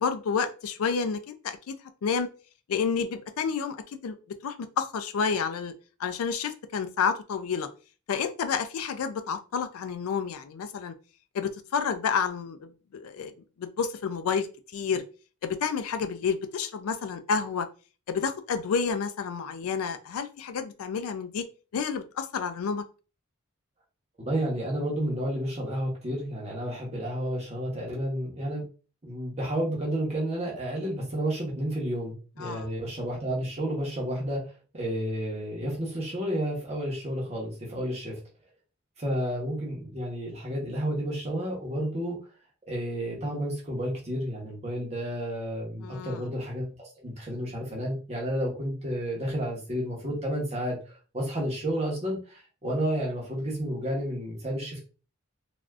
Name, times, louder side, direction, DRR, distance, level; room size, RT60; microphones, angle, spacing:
voice 1, 0.0-1.7 2.0-2.3 2.7-4.2 4.4-5.7 6.0-7.7 8.1-10.9 11.3-13.3 13.6-14.5 14.7-15.0 15.4-17.7 18.1-21.4 21.7-22.8 32.4-32.7 45.8-46.3, left 6 dB, 80° left, 8 dB, 0.4 m, -30 dB
voice 2, 24.2-28.6 29.0-38.2 39.0-42.2 42.7-54.8, equal, 30° right, -3 dB, 0.9 m, -31 dB
3.3 x 2.5 x 2.4 m, 0.35 s
head